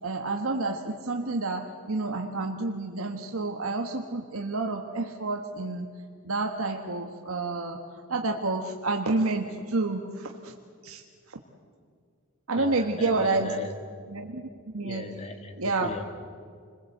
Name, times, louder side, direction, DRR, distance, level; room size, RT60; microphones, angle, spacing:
voice 1, 0.0-5.9 6.2-7.8 8.1-10.5 10.8-11.4 12.5-13.5 14.1-15.0 15.6-15.9, right 3 dB, 80° right, 3 dB, 1.6 m, -29 dB
voice 2, 12.5-13.8 14.8-16.1, left 1 dB, 30° left, 6 dB, 2.0 m, -39 dB
29.0 x 21.5 x 8.1 m, 2.1 s
head